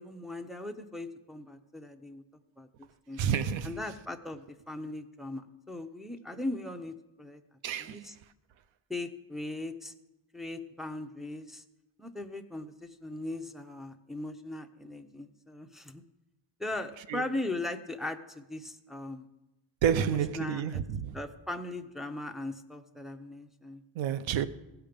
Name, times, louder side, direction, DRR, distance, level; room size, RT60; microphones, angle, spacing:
voice 1, 0.0-2.2 2.6-2.7 3.1-3.2 3.6-7.4 7.8-8.2 8.9-9.9 10.3-11.6 12.0-16.0 16.6-19.3 20.0-20.8 21.1-23.8, left 2 dB, ahead, 0.6 m, -39 dB
voice 2, 3.2-3.7 7.6-8.0 17.1-17.2 19.8-21.2 24.0-24.5, right 8 dB, 80° right, 0.7 m, -29 dB
16.5 x 5.8 x 5.2 m
cardioid pair, 125°, 45 cm